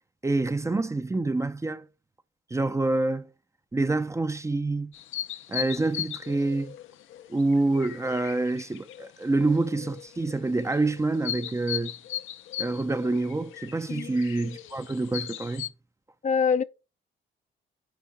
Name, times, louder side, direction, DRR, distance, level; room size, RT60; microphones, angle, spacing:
voice 1, 0.2-1.9 2.5-3.3 3.7-4.9 5.5-6.7 7.3-11.9 12.6-15.7, right 2 dB, 15° right, 0.6 m, -27 dB
sound 1, 4.9-15.7, left 11 dB, 80° left, 0.8 m, -38 dB
voice 2, 16.2-16.6, left 6 dB, 40° left, 0.6 m, -24 dB
9.4 x 3.6 x 4.8 m
cardioid pair, 90°, 20 cm